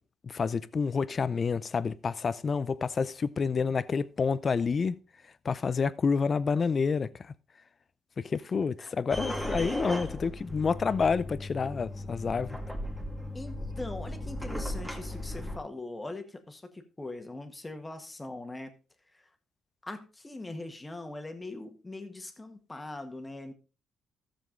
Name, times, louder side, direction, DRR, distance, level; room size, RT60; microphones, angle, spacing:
voice 1, 0.2-5.0 5.4-7.3 8.2-12.6, left 5 dB, 40° left, 0.6 m, -29 dB
sound 1, 9.1-15.6, left 1 dB, 5° right, 2.2 m, -36 dB
voice 2, 13.3-18.7 19.1-19.3 19.8-23.5, left 2 dB, 15° left, 1.7 m, -41 dB
13.5 x 7.1 x 3.8 m
cardioid pair, 90°, 0 cm